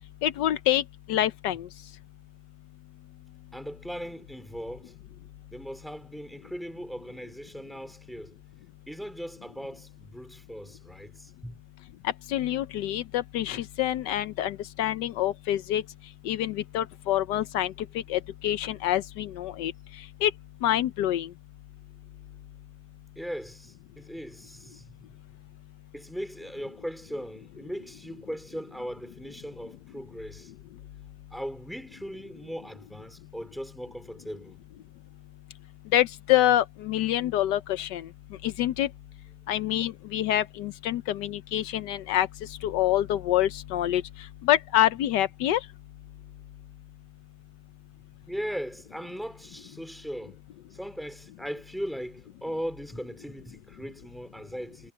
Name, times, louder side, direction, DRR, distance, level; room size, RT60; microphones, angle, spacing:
voice 1, 0.2-0.8 1.1-1.7 12.0-15.8 16.2-17.7 18.1-19.7 20.2-20.3 20.6-21.3 35.9-38.1 38.4-38.9 39.5-42.3 42.6-44.0 44.4-45.6, left 12 dB, 80° left, 1.3 m, -26 dB
voice 2, 3.5-4.9 5.5-8.4 8.9-11.6 23.2-25.0 25.9-30.5 31.3-34.6 48.3-50.4 50.7-54.9, equal, ahead, 4.0 m, -38 dB
omnidirectional pair, 1.9 m